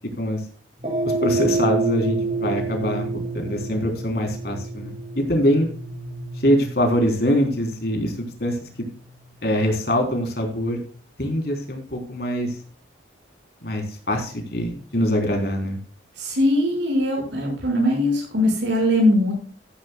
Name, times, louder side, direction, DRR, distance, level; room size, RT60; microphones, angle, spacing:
sound 1, 0.8-9.3, right 3 dB, 40° right, 2.8 m, -28 dB
voice 1, 1.2-3.1 3.3-5.7 6.4-8.9 9.4-10.8 11.2-12.5 13.6-15.8, equal, 55° left, 3 dB, 3.7 m, -23 dB
voice 2, 16.2-19.3, left 1 dB, 75° right, 0 dB, 5.7 m, -20 dB
15.0 x 10.5 x 2.3 m, 0.42 s
head